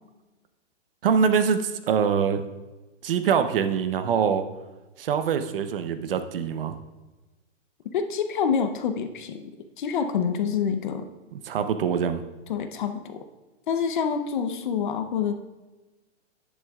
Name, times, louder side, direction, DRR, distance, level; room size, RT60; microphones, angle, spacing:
voice 1, 1.0-2.4 3.0-4.4 5.0-6.8 11.3-12.2, right 7 dB, 50° right, 9 dB, 0.7 m, -24 dB
voice 2, 7.9-9.5 9.8-11.1 12.5-13.3 13.7-15.3, left 7 dB, 40° left, 8 dB, 0.7 m, -27 dB
10.5 x 9.7 x 2.4 m, 1.2 s
hypercardioid pair, 165°, 37 cm